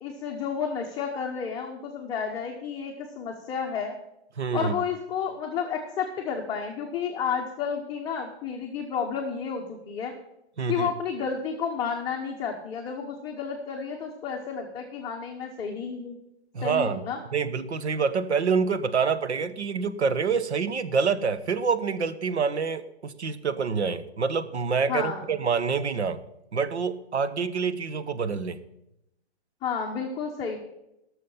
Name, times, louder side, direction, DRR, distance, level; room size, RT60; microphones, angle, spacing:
voice 1, 0.0-4.0 4.5-10.1 10.7-16.2 16.6-17.2 24.9-25.3 29.6-30.6, left 6 dB, 10° left, 0 dB, 0.9 m, -31 dB
voice 2, 4.4-4.8 10.6-10.9 16.5-17.0 17.3-26.2 26.5-28.6, right 5 dB, 90° right, 12 dB, 1.2 m, -26 dB
17.5 x 6.5 x 5.6 m, 0.86 s
hypercardioid pair, 150°, 33 cm